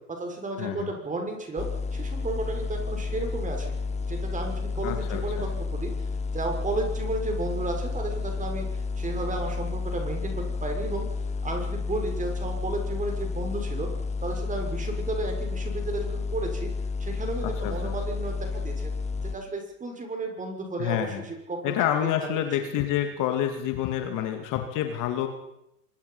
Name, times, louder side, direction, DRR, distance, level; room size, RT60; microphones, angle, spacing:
voice 1, 0.0-1.7 1.9-5.9 6.3-11.1 11.4-13.9 14.2-16.7 17.0-18.9 19.2-22.4 22.8-22.9, right 2 dB, 15° right, 3 dB, 6.3 m, -33 dB
voice 2, 0.6-0.9 4.8-5.5 17.4-17.9 20.8-21.2 21.6-25.3, left 11 dB, 40° left, 6 dB, 2.7 m, -28 dB
sound 1, 1.6-19.4, left 4 dB, 15° left, 0.9 m, -31 dB
25.0 x 22.0 x 5.7 m, 0.85 s
hypercardioid pair, 105°, 48 cm